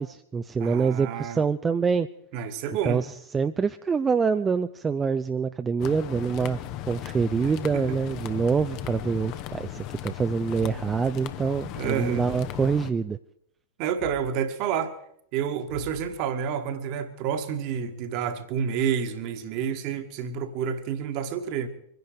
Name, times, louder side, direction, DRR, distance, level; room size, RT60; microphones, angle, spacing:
voice 1, 0.0-2.1 2.8-3.1 3.3-6.6 6.9-13.2, right 5 dB, 15° right, 0.5 m, -25 dB
voice 2, 0.6-1.4 2.3-3.0 7.7-8.0 11.7-12.3 13.8-14.9 15.3-21.7, right 8 dB, 45° right, 1.5 m, -29 dB
sound 1, 5.8-12.9, left 13 dB, 40° left, 0.9 m, -37 dB
Thump thud, 8.8-9.3 10.6-10.9 12.3-12.6 14.0-14.3 15.7-16.3, left 5 dB, 65° left, 3.9 m, -43 dB
24.0 x 10.5 x 5.0 m
figure-of-eight pair, 90°, 0 cm